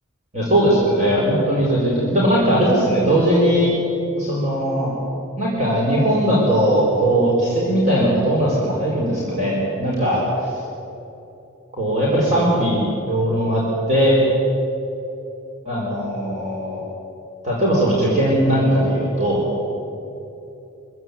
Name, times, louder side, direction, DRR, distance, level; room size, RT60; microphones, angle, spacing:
voice 1, 0.3-3.7 4.2-4.9 5.4-10.5 11.7-13.6 13.9-14.2 15.6-16.8 17.4-19.4, right 1 dB, 35° right, -5 dB, 5.0 m, -19 dB
25.0 x 16.0 x 9.6 m, 3.0 s
head